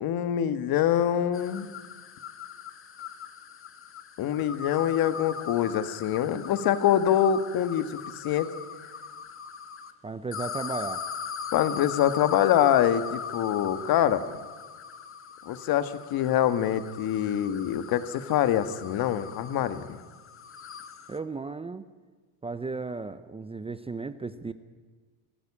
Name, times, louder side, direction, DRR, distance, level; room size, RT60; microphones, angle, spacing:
voice 1, 0.0-1.7 4.2-8.0 8.2-8.5 11.5-14.2 15.5-19.9, left 10 dB, 50° left, 11 dB, 1.7 m, -25 dB
sound 1, 1.3-9.9 10.3-21.2, left 6 dB, 30° left, 1.3 m, -40 dB
voice 2, 10.0-11.0 21.1-21.8 22.4-24.5, right 3 dB, 15° right, 12 dB, 0.7 m, -35 dB
27.0 x 15.0 x 8.6 m, 1.4 s
supercardioid pair, 120°, 45 cm